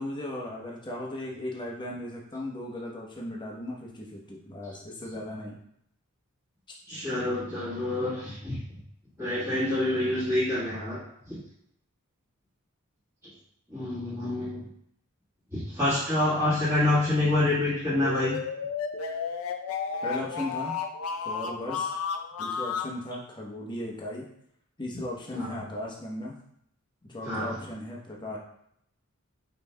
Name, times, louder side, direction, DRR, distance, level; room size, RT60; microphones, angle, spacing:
voice 1, 0.0-5.6 20.0-20.7 21.2-21.9 22.4-24.3 24.8-26.4 27.1-28.4, left 1 dB, 20° left, -3 dB, 0.9 m, -37 dB
voice 2, 6.9-8.6 9.2-11.4 13.7-14.7 15.5-18.4 25.3-25.5 27.2-27.6, left 2 dB, 10° right, -14 dB, 1.6 m, -27 dB
sound 1, 17.9-22.9, left 5 dB, 80° left, 0.5 m, -32 dB
5.3 x 4.0 x 2.2 m, 0.73 s
head